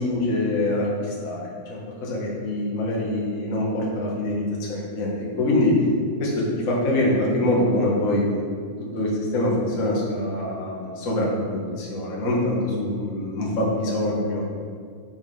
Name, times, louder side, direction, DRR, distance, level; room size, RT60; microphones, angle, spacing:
voice 1, 0.0-1.4 1.7-5.7 6.2-8.3 8.9-14.4, left 1 dB, 60° left, -4 dB, 0.8 m, -24 dB
7.9 x 5.3 x 5.6 m, 2.1 s
omnidirectional pair, 4.3 m